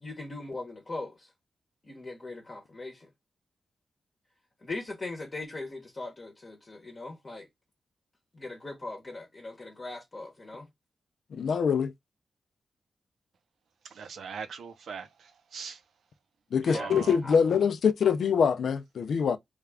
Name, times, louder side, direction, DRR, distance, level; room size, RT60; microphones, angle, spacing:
voice 1, 0.0-1.3 1.8-3.1 4.6-7.5 8.3-10.7 16.6-16.9 17.2-17.3, left 2 dB, 30° left, 0.9 m, -39 dB
voice 2, 11.3-11.9 16.5-19.4, left 6 dB, 75° left, 0.5 m, -24 dB
voice 3, 13.9-15.8 16.7-17.2, right 6 dB, 85° right, 0.7 m, -40 dB
3.5 x 2.4 x 3.3 m
wide cardioid pair, 125°, 0 cm